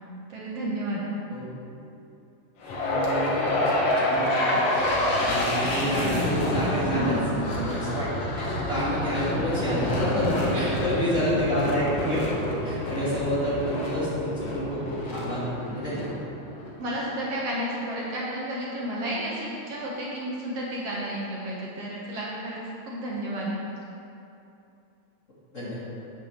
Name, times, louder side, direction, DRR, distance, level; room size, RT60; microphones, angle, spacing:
voice 1, 0.3-1.0 6.7-7.3 10.5-11.0 16.8-22.6 22.8-23.5, equal, 60° right, -5 dB, 2.3 m, -32 dB
sound 1, 2.6-16.8, left 1 dB, 60° left, 2.3 m, -27 dB
voice 2, 2.8-7.2 7.6-8.1 8.4-10.3 10.5-12.2 12.6-15.4 15.7-16.1 25.5-25.8, equal, 25° left, -9 dB, 2.5 m, -29 dB
9.3 x 7.2 x 6.7 m, 2.7 s
omnidirectional pair, 3.4 m